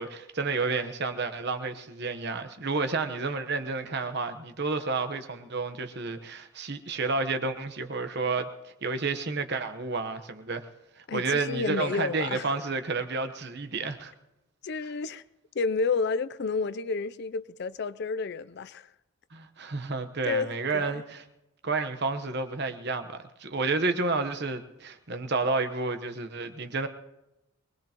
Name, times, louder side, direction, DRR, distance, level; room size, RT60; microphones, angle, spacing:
voice 1, 0.0-10.7 11.0-14.1 19.3-21.2 21.6-26.9, right 3 dB, 50° right, 1.0 m, -30 dB
voice 2, 11.1-12.5 14.6-15.2 15.5-18.9 20.3-21.0, left 4 dB, 50° left, 0.5 m, -30 dB
24.0 x 20.0 x 3.0 m
head